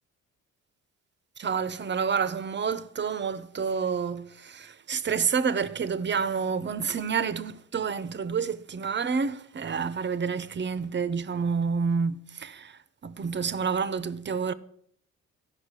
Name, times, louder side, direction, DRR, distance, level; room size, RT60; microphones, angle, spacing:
voice 1, 1.4-14.5, right 6 dB, 35° right, 0.9 m, -29 dB
14.5 x 5.7 x 9.8 m
cardioid pair, 90°, 30 cm